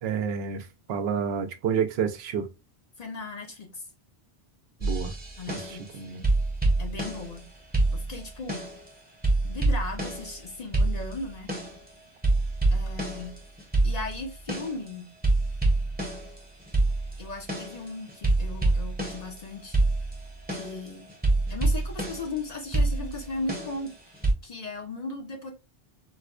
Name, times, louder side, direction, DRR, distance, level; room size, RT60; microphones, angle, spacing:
voice 1, 0.0-2.5 4.8-5.1 5.5-5.6 6.0-6.3, right 7 dB, 75° right, 0.8 m, -29 dB
voice 2, 3.0-3.8 5.4-5.9 6.8-7.5 7.9-8.7 9.4-11.5 12.7-13.4 13.8-15.1 17.2-19.8 20.5-21.1 21.5-25.5, left 3 dB, 45° left, 0.7 m, -37 dB
sound 1, 4.8-5.9 6.2-7.4 7.7-8.9 9.2-10.4 10.7-11.9 12.2-14.9 15.2-19.4 19.7-22.4 22.7-24.3, right 2 dB, 10° right, 0.7 m, -26 dB
4.1 x 2.1 x 2.4 m
omnidirectional pair, 1.1 m